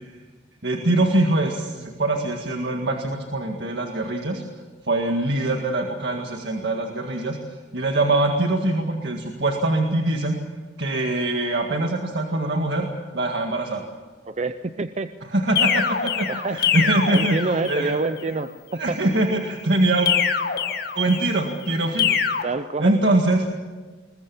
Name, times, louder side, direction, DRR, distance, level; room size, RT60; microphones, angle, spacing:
voice 1, 0.6-4.4 4.9-7.4 7.7-10.4 10.8-12.9 13.1-13.8 15.3-18.1 18.7-20.1 21.0-22.2 22.8-23.5, right 2 dB, 70° right, 2 dB, 1.9 m, -23 dB
voice 2, 14.3-15.1 16.3-16.6 17.1-19.0 22.4-23.1, right 3 dB, 40° right, 11 dB, 0.6 m, -27 dB
sound 1, 15.6-18.0 20.1-21.4 22.0-22.4, left 7 dB, 60° left, 1.7 m, -24 dB
21.0 x 21.0 x 7.2 m, 1.3 s
head